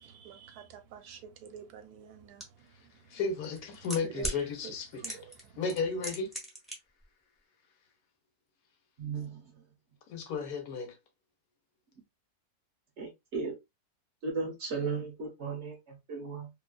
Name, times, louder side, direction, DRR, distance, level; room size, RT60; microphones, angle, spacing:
voice 1, 0.0-3.2 4.0-4.3 4.6-5.7, right 9 dB, 75° right, 1.1 m, -48 dB
sound 1, 2.4-2.5 3.4-4.4 5.0-5.4 5.7-6.7 7.0-7.1, right 1 dB, ahead, 0.6 m, -36 dB
voice 2, 3.1-5.2 5.6-6.3 10.1-10.9, left 5 dB, 70° left, 1.1 m, -34 dB
voice 3, 9.0-9.4 13.0-13.5 14.2-16.5, right 4 dB, 55° right, 1.0 m, -36 dB
2.8 x 2.3 x 2.2 m
omnidirectional pair, 1.6 m